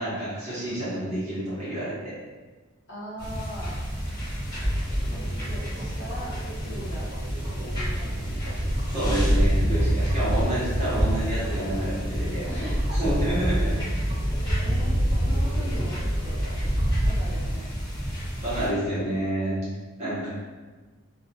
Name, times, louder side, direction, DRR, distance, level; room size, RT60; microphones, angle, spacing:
voice 1, 0.0-2.1 8.9-12.5 12.9-13.9 18.4-19.6 20.0-20.3, right 1 dB, 30° right, -11 dB, 1.0 m, -29 dB
voice 2, 2.9-3.8 4.5-4.7 5.1-5.2 5.5-6.3 6.7-7.1 7.6-8.5 12.4-13.0 14.5-16.4 17.0-17.7 18.6-18.8 20.0-20.3, equal, 50° left, -8 dB, 0.9 m, -40 dB
sound 1, 3.2-18.7, equal, 20° left, 1.0 m, -26 dB
sound 2, 4.8-17.0, right 1 dB, 85° right, 1.1 m, -41 dB
2.5 x 2.2 x 2.6 m, 1.3 s
head